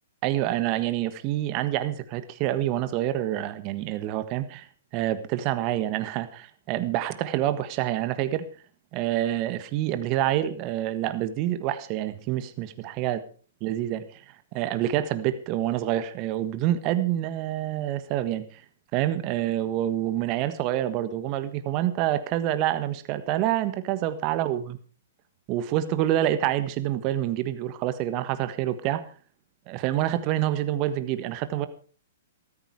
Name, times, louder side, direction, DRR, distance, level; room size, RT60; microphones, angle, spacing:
voice 1, 0.2-4.7 4.9-8.4 8.9-13.2 13.6-14.2 14.5-18.6 18.9-24.8 25.5-29.1 29.7-31.7, right 13 dB, 40° right, 12 dB, 1.5 m, -27 dB
14.0 x 13.5 x 4.8 m, 0.40 s
hypercardioid pair, 120°, 0 cm